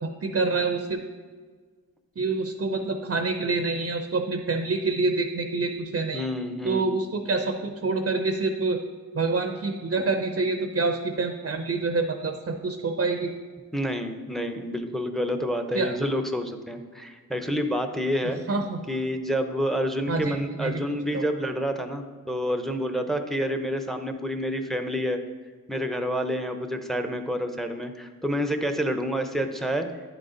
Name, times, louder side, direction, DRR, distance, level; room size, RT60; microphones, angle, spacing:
voice 1, 0.0-1.0 2.2-6.3 6.6-8.8 9.1-13.3 15.7-16.0 18.5-18.8 20.1-20.8 21.1-21.2, right 3 dB, 40° right, 5 dB, 0.6 m, -27 dB
voice 2, 6.1-6.9 13.7-18.4 18.9-25.2 25.7-29.9, equal, ahead, 6 dB, 0.6 m, -28 dB
9.9 x 3.9 x 3.8 m, 1.5 s
cardioid pair, 55°, 36 cm